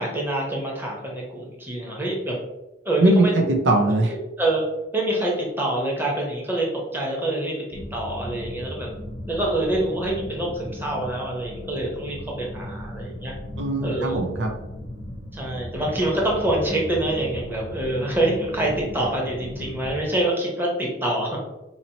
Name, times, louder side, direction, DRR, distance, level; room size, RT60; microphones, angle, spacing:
voice 1, 0.0-2.4 2.8-3.3 4.1-4.6 4.9-6.7 6.9-7.5 7.9-8.9 9.3-13.3 13.8-14.2 15.3-21.4, right 1 dB, 10° right, -2 dB, 0.9 m, -26 dB
voice 2, 3.0-4.1 13.6-14.5, right 2 dB, 85° right, 2 dB, 0.6 m, -20 dB
sound 1, 7.7-20.1, equal, 65° left, 0.8 m, -37 dB
4.1 x 2.9 x 2.8 m, 0.99 s
head